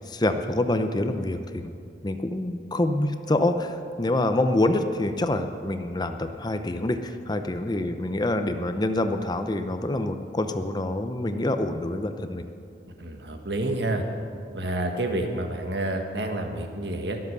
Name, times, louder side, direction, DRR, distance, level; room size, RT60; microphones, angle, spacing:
voice 1, 0.0-1.8 2.0-12.4, left 1 dB, 25° left, 8 dB, 0.7 m, -26 dB
voice 2, 13.0-14.0 14.5-17.2, right 1 dB, 70° right, 4 dB, 1.6 m, -29 dB
21.5 x 7.8 x 6.7 m, 2.5 s
head